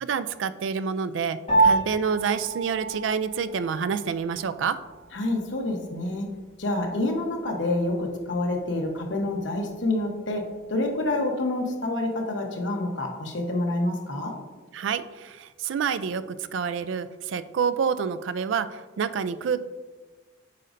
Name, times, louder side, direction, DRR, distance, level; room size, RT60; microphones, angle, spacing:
voice 1, 0.0-4.8 14.7-19.6, right 6 dB, 85° right, 13 dB, 0.4 m, -28 dB
Piano, 1.5-11.1, right 3 dB, 35° left, 1.7 m, -30 dB
voice 2, 5.1-6.3 6.6-14.4, left 2 dB, 80° left, 2 dB, 1.0 m, -27 dB
8.4 x 5.1 x 2.6 m, 1.3 s
head